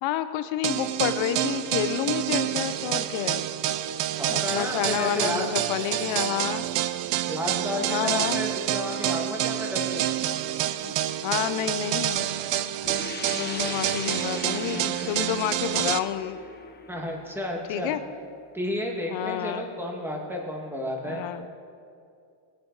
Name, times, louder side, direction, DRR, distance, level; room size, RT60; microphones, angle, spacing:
voice 1, 0.0-3.5 4.3-6.7 7.9-8.4 10.7-10.9 11.2-12.3 13.3-16.4 17.7-18.0 19.1-19.7 21.0-21.5, left 11 dB, 65° left, 11 dB, 0.9 m, -29 dB
sound 1, 0.6-16.0, right 12 dB, 60° right, 0.7 m, -28 dB
voice 2, 4.2-5.5 7.2-10.0 13.4-14.0 14.7-14.9 16.9-18.0 18.5-21.2, equal, 5° right, -1 dB, 2.0 m, -32 dB
sound 2, 12.8-18.3, left 4 dB, 20° left, 0.9 m, -41 dB
20.0 x 9.2 x 4.1 m, 2.4 s
cardioid pair, 135°, 49 cm